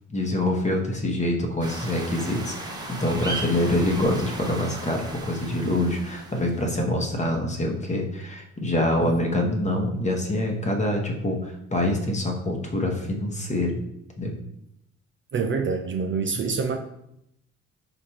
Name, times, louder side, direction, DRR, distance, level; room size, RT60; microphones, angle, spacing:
voice 1, 0.1-13.8 14.2-14.4, left 1 dB, 25° left, 2 dB, 0.9 m, -25 dB
sound 1, 1.6-6.7, right 2 dB, 15° right, 0.8 m, -36 dB
voice 2, 15.3-16.8, right 5 dB, 40° right, 4 dB, 0.4 m, -26 dB
4.4 x 2.5 x 4.3 m, 0.79 s
cardioid pair, 90°, 30 cm